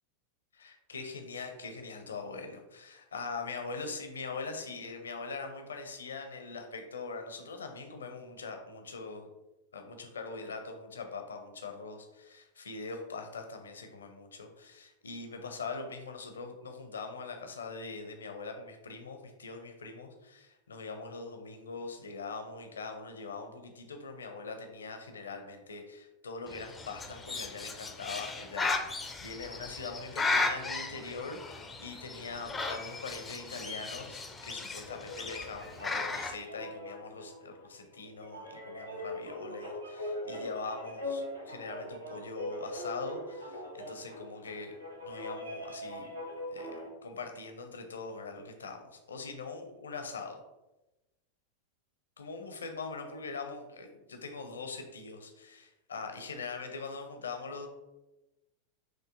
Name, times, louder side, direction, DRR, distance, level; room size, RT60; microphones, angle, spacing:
voice 1, 0.5-9.3 9.7-44.8 45.0-46.1 46.5-50.4 52.2-57.7, left 4 dB, 70° left, 5 dB, 0.5 m, -42 dB
Bird, 26.5-36.4, left 3 dB, 15° left, 0.4 m, -36 dB
sound 1, 34.8-46.9, left 1 dB, 85° right, 0.9 m, -41 dB
5.9 x 2.6 x 2.4 m, 1.0 s
figure-of-eight pair, 90°, 0 cm